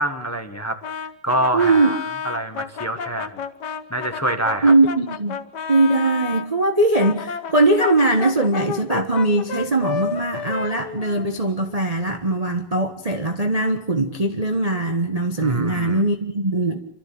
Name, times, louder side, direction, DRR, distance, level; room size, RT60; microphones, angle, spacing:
voice 1, 0.0-2.0 2.2-3.4 3.9-4.7 15.4-16.0, right 1 dB, 10° left, 1.3 m, -26 dB
Brass instrument, 0.8-6.5 7.0-11.8, left 6 dB, 55° left, 1.8 m, -31 dB
voice 2, 1.5-1.9 4.6-5.4 5.7-16.8, right 2 dB, 20° right, 1.1 m, -20 dB
28.0 x 13.0 x 8.6 m
omnidirectional pair, 2.4 m